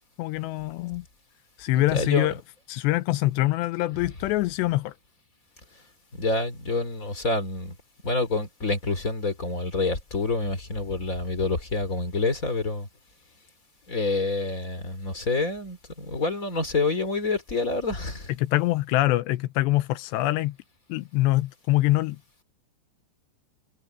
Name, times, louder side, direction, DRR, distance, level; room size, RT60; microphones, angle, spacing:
voice 1, 0.2-1.1 1.6-2.3 2.7-4.9 18.4-20.6 20.9-22.2, left 17 dB, 85° left, 2.8 m, -24 dB
voice 2, 1.7-2.3 6.1-7.8 8.0-12.9 13.9-18.3, left 3 dB, 20° left, 2.7 m, -27 dB
omnidirectional pair, 5.2 m